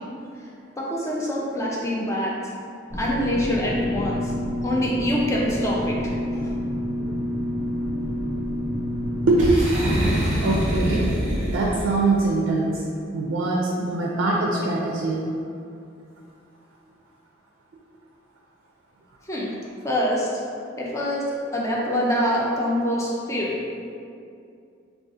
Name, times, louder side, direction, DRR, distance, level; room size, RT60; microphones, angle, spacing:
voice 1, 0.8-2.3 2.9-4.3 4.6-6.1 6.4-6.5 19.2-19.5 19.8-20.4 20.8-21.3 21.5-23.5, equal, 15° left, -4 dB, 0.4 m, -25 dB
sound 1, 2.9-9.3, equal, 40° left, 1.4 m, -28 dB
Boom, 9.4-12.1, right 1 dB, 35° right, 0.7 m, -24 dB
voice 2, 10.4-11.1 11.5-12.8 13.1-15.3, right 2 dB, 75° right, -2 dB, 0.4 m, -23 dB
2.7 x 2.3 x 3.6 m, 2.5 s
head